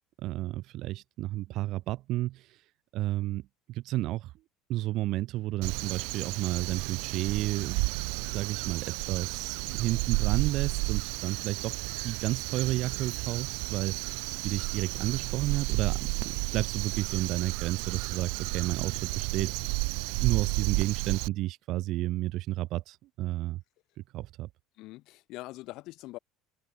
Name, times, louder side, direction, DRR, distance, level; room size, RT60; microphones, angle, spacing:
voice 1, 0.2-2.6 2.9-4.3 4.7-7.8 8.3-19.6 20.2-23.6 24.1-24.5, right 16 dB, 45° right, 3.3 m, -32 dB
Crow, 5.6-21.3, right 35 dB, 65° right, 1.6 m, -32 dB
voice 2, 24.8-26.2, left 19 dB, 50° left, 7.8 m, -43 dB
cardioid pair, 180°, 0 cm